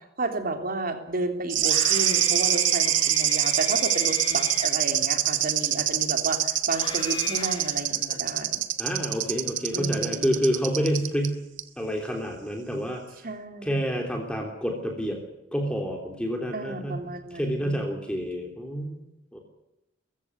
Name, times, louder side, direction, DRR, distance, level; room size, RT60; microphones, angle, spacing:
voice 1, 0.2-8.6 9.7-10.3 13.2-13.9 16.5-17.8, right 2 dB, 50° right, 6 dB, 3.3 m, -32 dB
Screaming, 1.5-6.0 6.7-8.4, left 3 dB, 25° left, 6.5 m, -38 dB
sound 1, 1.5-11.3 11.6-11.7, right 12 dB, 85° right, 1.6 m, -25 dB
voice 2, 8.8-11.4 11.8-13.0 13.6-15.2 15.5-17.0 17.3-19.0 19.3-19.4, equal, 5° left, 2 dB, 3.2 m, -28 dB
22.5 x 15.5 x 9.6 m, 0.88 s
head